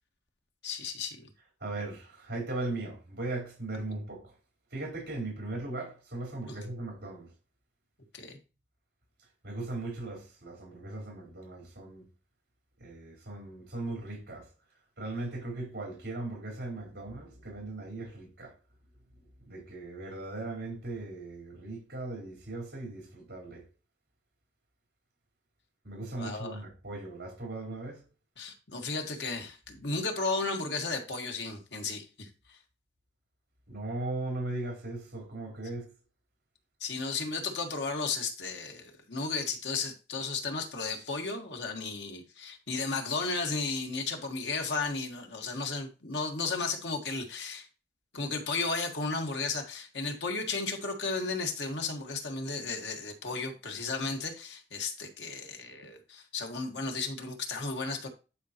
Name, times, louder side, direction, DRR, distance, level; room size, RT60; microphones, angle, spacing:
voice 1, 0.6-1.3 6.5-6.6 8.1-8.4 26.2-26.6 28.4-32.6 36.8-47.7 48.1-58.1, left 4 dB, 85° left, 1.7 m, -34 dB
voice 2, 1.6-4.3 4.7-7.3 9.4-12.1 12.8-14.5 15.0-18.5 19.5-23.6 25.8-28.0 33.7-35.9, right 2 dB, 65° right, 4.3 m, -38 dB
10.5 x 5.5 x 3.0 m
head